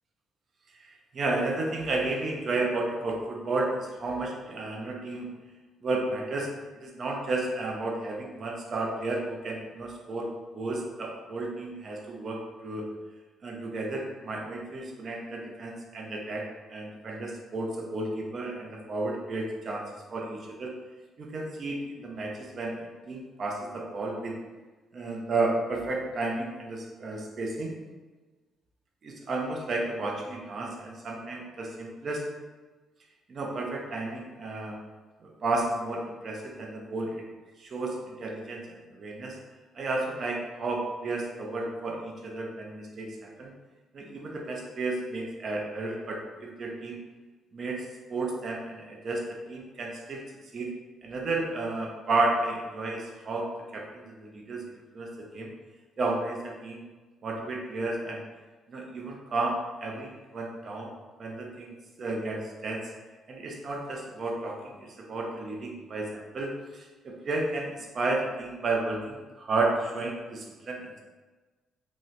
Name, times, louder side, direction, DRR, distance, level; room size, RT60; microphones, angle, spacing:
voice 1, 0.8-5.3 5.8-12.9 13.4-19.9 20.1-20.8 21.2-24.3 24.9-27.7 29.0-32.2 33.3-34.8 35.2-37.2 37.6-39.4 39.8-43.5 43.9-47.0 47.5-47.8 48.1-50.2 50.5-50.7 51.0-54.6 54.9-55.5 56.0-56.8 57.2-58.3 58.7-60.9 61.2-62.9 63.3-71.0, right 2 dB, 40° right, 0 dB, 0.5 m, -32 dB
2.9 x 2.1 x 3.9 m, 1.3 s
cardioid pair, 150°, 0 cm